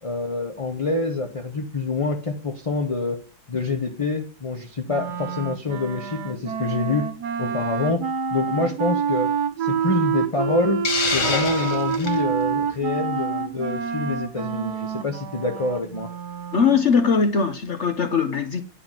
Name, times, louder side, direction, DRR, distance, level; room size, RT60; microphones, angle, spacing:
voice 1, 0.0-3.2 3.5-7.1 7.4-8.0 8.3-9.3 9.6-10.8 11.1-16.1, left 3 dB, 25° left, 0.8 m, -26 dB
Wind instrument woodwind instrument, 4.9-16.9, right 6 dB, 55° right, 1.5 m, -27 dB
Hiss, 10.8-12.2, left 4 dB, 90° left, 3.2 m, -25 dB
voice 2, 16.5-18.6, left 5 dB, 60° left, 0.7 m, -20 dB
10.0 x 4.7 x 7.5 m
omnidirectional pair, 2.2 m